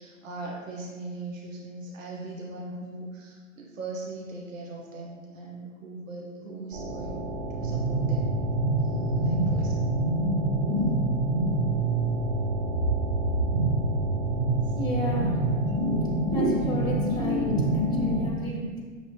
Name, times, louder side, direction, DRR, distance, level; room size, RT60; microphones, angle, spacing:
voice 1, 0.0-7.2 7.5-8.5 8.8-9.8 14.6-14.7, right 2 dB, 70° right, -2 dB, 0.7 m, -39 dB
sound 1, 6.7-18.3, right 2 dB, 25° right, 0.6 m, -26 dB
voice 2, 14.7-15.4 16.3-18.8, left 1 dB, 10° left, -5 dB, 0.8 m, -32 dB
6.0 x 2.7 x 3.0 m, 1.5 s
figure-of-eight pair, 105°, 40 cm